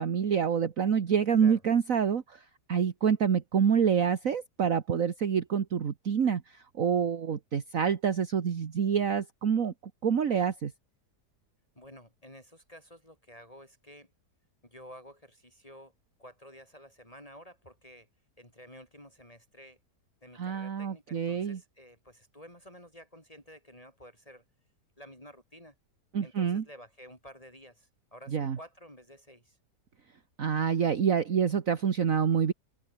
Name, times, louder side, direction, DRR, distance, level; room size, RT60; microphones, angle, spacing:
voice 1, 0.0-2.4 2.7-6.4 6.8-9.7 10.0-10.7 20.4-21.6 26.1-26.6 28.3-28.6 30.4-32.5, right 7 dB, 55° right, 1.7 m, -27 dB
voice 2, 11.8-14.1 14.6-15.9 16.2-18.1 18.4-19.8 20.2-24.4 25.0-25.7 26.2-29.6, equal, 20° left, 6.6 m, -51 dB
omnidirectional pair, 1.8 m